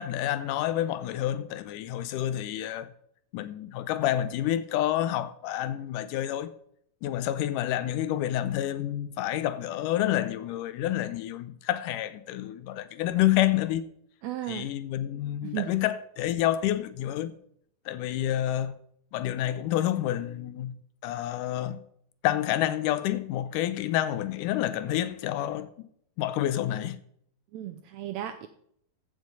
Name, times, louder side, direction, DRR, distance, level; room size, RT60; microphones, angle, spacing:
voice 1, 0.0-2.9 3.3-6.5 7.0-13.8 14.5-17.3 17.9-18.8 19.1-21.8 22.2-25.7 26.2-27.0, left 13 dB, 80° left, 2.0 m, -28 dB
voice 2, 14.2-14.7 15.4-15.7 27.5-28.5, right 12 dB, 80° right, 1.6 m, -34 dB
15.0 x 6.3 x 5.2 m
omnidirectional pair, 3.9 m